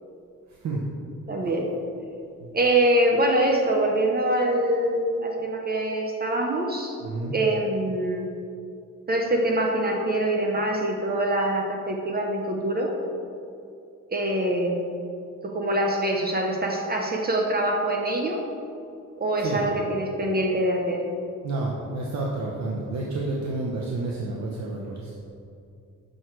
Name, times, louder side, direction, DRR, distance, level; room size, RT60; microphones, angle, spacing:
voice 1, 0.5-0.8 2.4-2.5 7.0-7.4 19.4-19.7 21.4-25.1, right 2 dB, 60° right, -2 dB, 0.9 m, -30 dB
voice 2, 1.3-1.7 2.5-7.0 7.3-8.3 9.1-12.9 14.1-14.9 15.4-18.4 19.2-21.0, right 1 dB, 30° right, 1 dB, 0.7 m, -24 dB
6.6 x 6.2 x 4.5 m, 2.6 s
cardioid pair, 140°, 32 cm